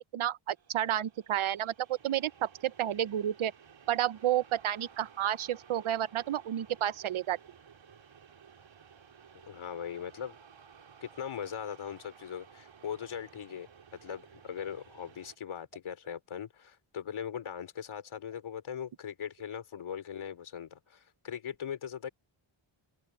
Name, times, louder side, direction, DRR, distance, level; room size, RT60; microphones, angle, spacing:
voice 1, 0.1-3.5 3.9-7.4, right 11 dB, 90° right, 0.9 m, -31 dB
sound 1, 0.5-15.4, right 7 dB, 70° right, 4.6 m, -56 dB
voice 2, 9.5-10.4 11.0-22.1, left 8 dB, 80° left, 3.8 m, -40 dB
open air
wide cardioid pair, 140°, 48 cm